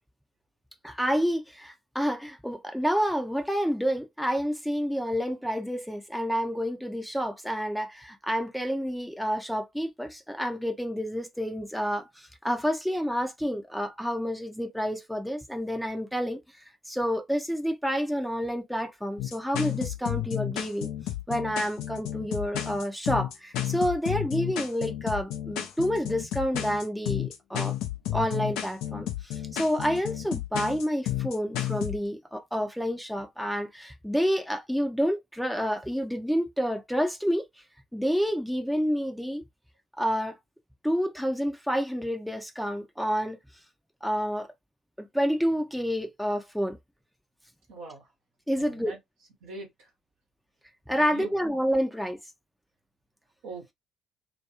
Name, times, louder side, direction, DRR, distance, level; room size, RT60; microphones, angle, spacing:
voice 1, 0.8-16.4 16.9-20.9 21.3-27.8 28.1-37.5 37.9-39.4 40.0-40.4 40.8-43.4 44.0-44.5 45.0-46.8 48.5-48.9 50.9-52.2, equal, ahead, 0.5 m, -29 dB
sound 1, 19.2-32.0, left 12 dB, 70° left, 0.4 m, -32 dB
voice 2, 47.7-48.1 48.6-49.0 49.4-49.9 50.9-51.5 53.4-53.7, right 4 dB, 75° right, 0.8 m, -42 dB
2.3 x 2.2 x 2.9 m
hypercardioid pair, 45°, 0 cm